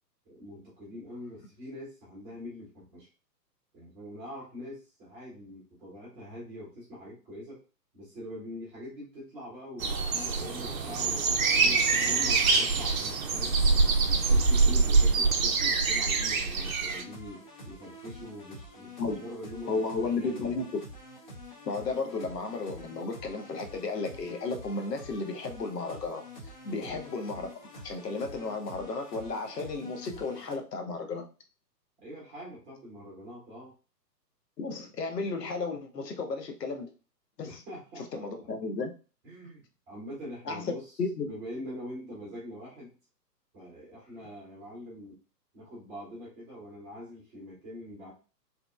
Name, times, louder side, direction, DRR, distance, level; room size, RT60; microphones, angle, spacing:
voice 1, 0.2-3.1 3.7-7.6 7.9-13.6 14.0-20.6 26.7-27.0 32.0-33.7 37.4-38.3 39.2-40.9 41.2-43.0 43.5-45.2 45.5-48.1, equal, 10° right, -6 dB, 0.8 m, -44 dB
sound 1, 9.8-17.0, right 4 dB, 55° right, 0.5 m, -25 dB
sound 2, 16.5-30.6, left 1 dB, 30° left, 0.6 m, -47 dB
voice 2, 19.7-20.7 21.7-26.2 26.6-27.5 27.8-31.2 34.6-36.9 37.4-37.5 38.1-38.9 40.5-41.3, left 3 dB, 75° left, 4 dB, 0.7 m, -33 dB
2.8 x 2.0 x 2.2 m, 0.34 s
figure-of-eight pair, 125°, 49 cm